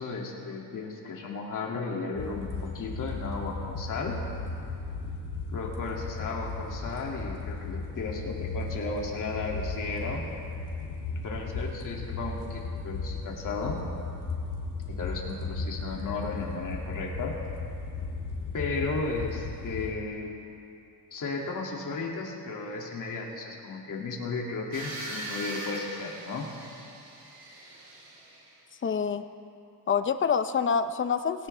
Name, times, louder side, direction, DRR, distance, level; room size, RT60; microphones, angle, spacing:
voice 1, 0.0-4.2 5.5-10.2 11.2-13.8 14.9-17.4 18.5-20.3 21.1-26.5, left 3 dB, 50° left, -1 dB, 2.4 m, -34 dB
sound 1, 2.1-19.9, left 3 dB, 85° left, 2.5 m, -36 dB
sound 2, 24.7-28.5, right 1 dB, 85° right, 4.6 m, -41 dB
voice 2, 28.8-29.2 29.9-31.5, left 6 dB, 30° left, 10 dB, 0.6 m, -26 dB
19.5 x 17.5 x 3.4 m, 2.6 s
cardioid pair, 145°, 39 cm